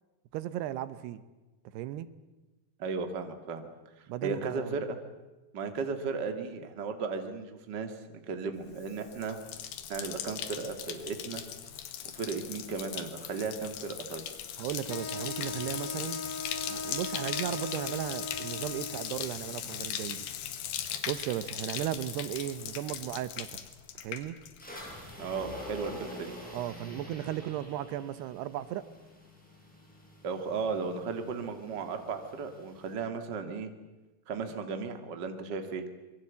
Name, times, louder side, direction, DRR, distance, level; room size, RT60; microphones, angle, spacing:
voice 1, 0.3-1.2 1.7-2.1 4.1-4.8 14.6-16.3 16.7-20.3 21.1-23.7 24.0-24.4 26.5-28.8, right 12 dB, 85° right, 14 dB, 3.0 m, -36 dB
voice 2, 2.8-3.7 4.2-5.0 5.5-8.0 8.3-9.4 9.9-11.4 12.1-14.3 25.2-26.3 30.2-33.7 34.3-35.9, right 5 dB, 35° right, 7 dB, 2.0 m, -35 dB
Bathtub (filling or washing), 8.7-24.8 25.1-25.6, left 10 dB, 85° left, 3.7 m, -39 dB
Wind instrument woodwind instrument, 14.9-19.3, left 3 dB, 55° left, 2.4 m, -39 dB
sound 1, 24.6-32.9, equal, ahead, 7.6 m, -47 dB
26.0 x 22.0 x 8.4 m, 1.1 s
omnidirectional pair, 4.6 m